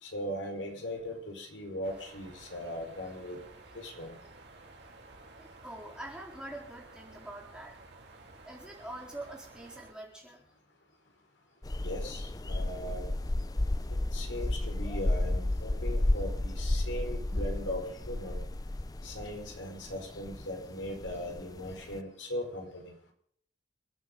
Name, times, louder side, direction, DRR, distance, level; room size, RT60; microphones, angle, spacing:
voice 1, 0.0-3.4 3.7-4.2 11.8-13.1 14.1-18.4 19.0-22.9, left 1 dB, 75° left, 2 dB, 4.8 m, -39 dB
sound 1, 1.8-9.9, right 2 dB, 65° right, 3.6 m, -53 dB
voice 2, 5.4-7.8 8.5-10.4, right 1 dB, 5° right, -1 dB, 3.9 m, -45 dB
sound 2, 11.6-22.0, left 1 dB, 20° left, 0.5 m, -33 dB
28.5 x 9.6 x 3.9 m, 0.65 s
head